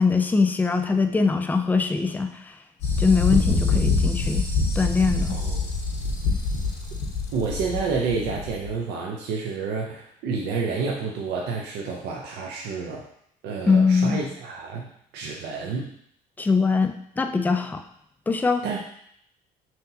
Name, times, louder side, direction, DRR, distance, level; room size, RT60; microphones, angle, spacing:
voice 1, 0.0-2.6 3.0-4.5 4.8-5.4 13.7-14.2 16.4-17.8 18.3-18.6, left 4 dB, 10° left, 6 dB, 0.3 m, -22 dB
sound 1, 2.8-8.7, left 3 dB, 80° left, 1.0 m, -25 dB
voice 2, 7.3-13.0 13.4-15.9 18.6-18.8, right 4 dB, 85° right, -1 dB, 0.6 m, -29 dB
5.7 x 2.7 x 2.7 m, 0.70 s
cardioid pair, 110°, 17 cm